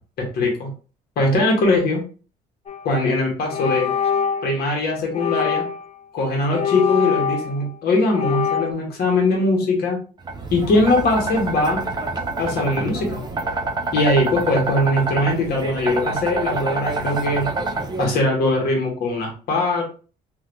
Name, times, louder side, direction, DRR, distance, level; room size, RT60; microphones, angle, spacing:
voice 1, 0.3-0.7 1.2-2.0 2.8-3.9 4.4-5.6 6.1-10.0 10.5-11.8 12.4-13.2 13.9-17.5 18.0-19.8, left 2 dB, 65° left, 0 dB, 1.4 m, -21 dB
sound 1, 2.7-2.9 3.5-4.5 5.1-5.9 6.5-7.7 8.1-8.7, left 8 dB, 35° left, 0.5 m, -23 dB
sound 2, 10.2-18.0, right 3 dB, 25° right, 0.5 m, -27 dB
3.2 x 2.7 x 2.6 m, 0.36 s
cardioid pair, 110°, 17 cm